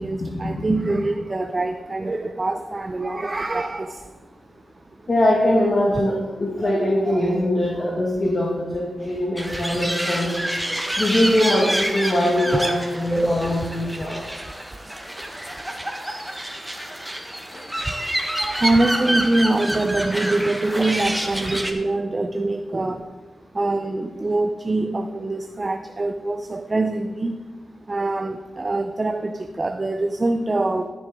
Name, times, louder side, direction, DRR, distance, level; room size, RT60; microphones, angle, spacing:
voice 1, 0.0-4.0 6.6-7.4 10.7-11.0 11.5-12.1 12.4-12.8 13.1-13.5 18.4-23.0 23.6-27.3 27.9-30.9, right 2 dB, 35° right, 7 dB, 0.6 m, -24 dB
voice 2, 5.1-10.3 11.0-14.2 17.5-17.6, left 1 dB, 45° left, -3 dB, 1.8 m, -22 dB
sound 1, 9.4-21.7, right 1 dB, 10° right, 1.4 m, -28 dB
13.0 x 7.0 x 3.7 m, 1.2 s
cardioid pair, 55°, 0 cm